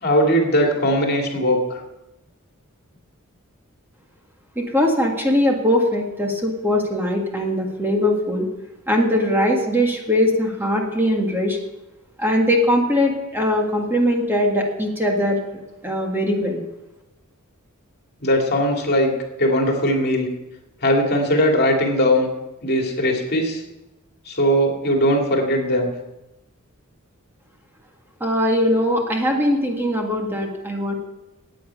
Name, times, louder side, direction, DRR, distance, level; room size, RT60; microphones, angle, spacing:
voice 1, 0.0-1.6 18.2-19.1 19.4-20.3 20.8-22.3 22.6-23.6 24.3-25.9, equal, 50° left, 1 dB, 2.4 m, -19 dB
voice 2, 4.6-8.5 8.9-11.6 12.2-15.4 15.8-16.6 28.2-30.9, left 1 dB, 10° right, 0 dB, 1.7 m, -20 dB
10.5 x 8.8 x 8.7 m, 0.98 s
head